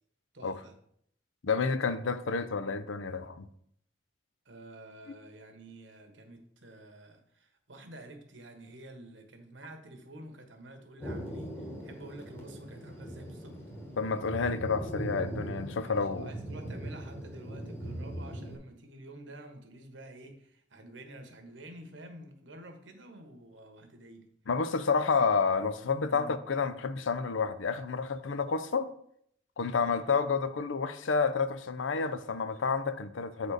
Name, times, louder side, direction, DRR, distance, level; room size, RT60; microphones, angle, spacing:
voice 1, 0.3-0.7 4.4-13.6 15.7-24.3 25.0-25.2 26.1-26.4 29.8-30.2, right 1 dB, 80° right, 1.3 m, -49 dB
voice 2, 1.4-3.5 14.0-16.3 24.5-28.9 29.6-33.5, left 5 dB, 90° left, 0.6 m, -30 dB
Thunder, 11.0-18.6, right 1 dB, 10° left, 1.1 m, -40 dB
8.1 x 4.3 x 4.9 m
head